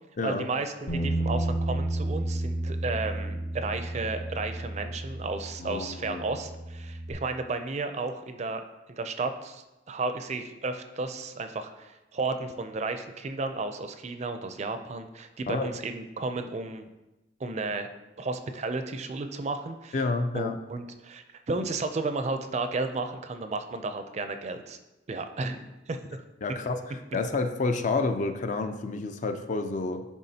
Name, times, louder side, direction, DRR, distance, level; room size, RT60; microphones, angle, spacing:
voice 1, 0.2-8.6 8.9-16.9 17.4-17.9 18.2-20.0 20.3-24.8 25.1-26.0, right 3 dB, 40° right, 8 dB, 0.4 m, -33 dB
Bass guitar, 0.9-7.1, right 1 dB, 90° left, 1.3 m, -32 dB
voice 2, 5.6-6.2 15.5-15.7 19.9-20.6 26.4-26.8 27.1-30.1, left 3 dB, 45° left, 8 dB, 0.4 m, -29 dB
10.5 x 3.6 x 2.8 m, 1.0 s
head